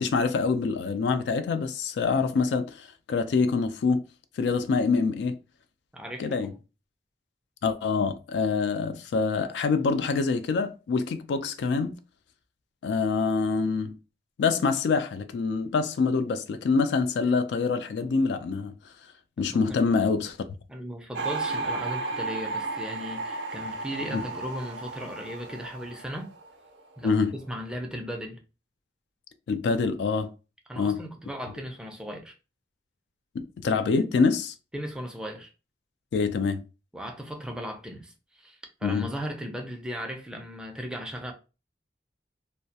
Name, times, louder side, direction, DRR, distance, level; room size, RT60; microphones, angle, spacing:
voice 1, 0.0-4.0 4.4-5.4 6.2-6.5 7.6-12.0 12.8-14.0 14.4-18.7 19.4-20.4 24.1-24.2 27.0-27.3 29.5-30.3 30.8-31.0 33.3-34.5 36.1-36.6 38.8-39.1, left 4 dB, 75° left, 0.3 m, -25 dB
voice 2, 5.9-6.5 19.5-19.9 20.7-26.3 27.0-28.4 30.7-32.3 34.7-35.5 36.9-41.3, equal, 5° right, 0.4 m, -37 dB
sound 1, 21.1-27.0 27.2-27.7, right 3 dB, 75° right, 0.4 m, -34 dB
2.2 x 2.1 x 2.7 m
head